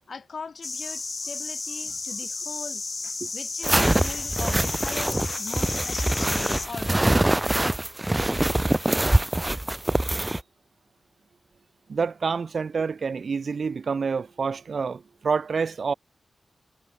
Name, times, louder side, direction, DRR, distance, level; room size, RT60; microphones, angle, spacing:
voice 1, 0.1-2.8 3.3-7.1, left 5 dB, 60° left, 6.1 m, -40 dB
sound 1, 0.6-6.7, left 3 dB, 45° left, 3.7 m, -33 dB
sound 2, 3.6-10.4, right 1 dB, 15° right, 1.4 m, -24 dB
voice 2, 11.9-15.9, right 5 dB, 65° right, 3.4 m, -27 dB
cardioid pair, 75°, 0 cm